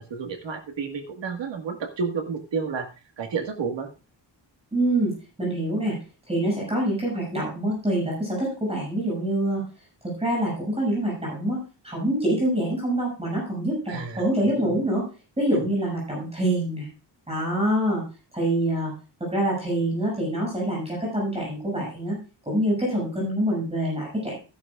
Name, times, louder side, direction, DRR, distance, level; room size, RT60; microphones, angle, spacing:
voice 1, 0.0-2.9 3.2-3.9 13.9-14.3 14.6-14.7 15.5-15.7, right 5 dB, 80° right, 5 dB, 1.9 m, -31 dB
voice 2, 4.7-5.1 5.4-6.0 6.3-9.6 10.0-15.0 15.4-16.9 17.3-18.0 18.3-18.9 19.2-22.2 22.4-24.3, right 1 dB, 15° right, -4 dB, 6.9 m, -25 dB
15.0 x 11.0 x 2.5 m, 0.32 s
wide cardioid pair, 160°, 43 cm